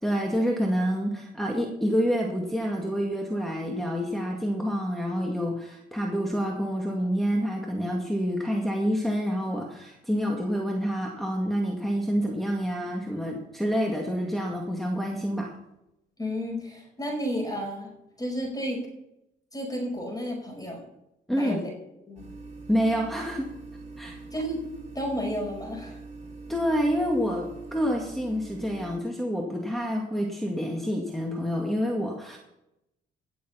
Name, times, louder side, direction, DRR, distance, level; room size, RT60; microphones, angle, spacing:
voice 1, 0.0-15.5 21.3-21.6 22.7-23.5 24.0-24.2 26.5-32.4, equal, ahead, -1 dB, 2.1 m, -28 dB
voice 2, 16.2-17.9 18.2-18.8 19.5-20.8 21.4-21.7 22.1-22.2 24.3-24.6 24.9-26.0, equal, 20° left, 2 dB, 5.2 m, -32 dB
sound 1, 22.2-29.0, right 3 dB, 35° right, 3.2 m, -43 dB
17.5 x 7.1 x 5.8 m, 0.85 s
cardioid pair, 90°, 20 cm